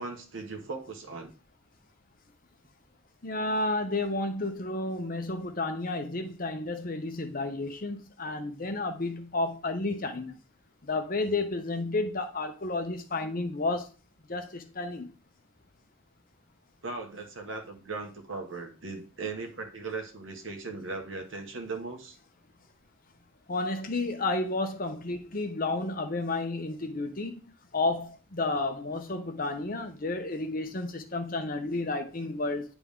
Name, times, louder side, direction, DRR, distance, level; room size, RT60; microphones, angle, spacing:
voice 1, 0.0-1.3 16.8-22.2, right 3 dB, 65° right, 1.4 m, -38 dB
voice 2, 3.2-10.4 10.9-13.9 14.3-15.1 23.5-27.4 27.7-32.7, left 2 dB, 40° left, 0.8 m, -31 dB
9.9 x 3.5 x 3.6 m
head